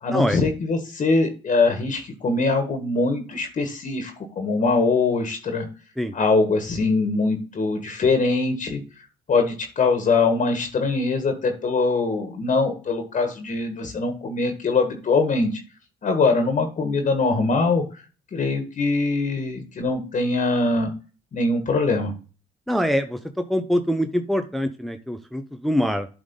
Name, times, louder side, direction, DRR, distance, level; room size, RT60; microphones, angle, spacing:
voice 1, 0.0-5.7 6.1-8.8 9.3-15.6 16.0-17.8 18.3-20.9 21.3-22.1, left 3 dB, 45° left, 6 dB, 1.6 m, -22 dB
voice 2, 22.7-23.2 23.5-26.1, equal, ahead, 8 dB, 0.7 m, -24 dB
8.6 x 3.6 x 5.3 m, 0.35 s
supercardioid pair, 70°, 17 cm